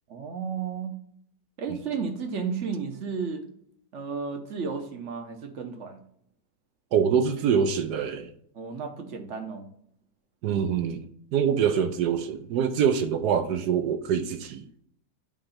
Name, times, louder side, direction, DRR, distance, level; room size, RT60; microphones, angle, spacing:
voice 1, 0.1-0.9 1.6-3.4 3.9-6.0 8.5-9.7 11.4-11.6, right 5 dB, 50° right, 1.1 m, -33 dB
voice 2, 6.9-8.3 10.4-11.0 11.3-14.7, right 7 dB, 70° right, 1.2 m, -25 dB
8.8 x 3.3 x 5.6 m
omnidirectional pair, 1.9 m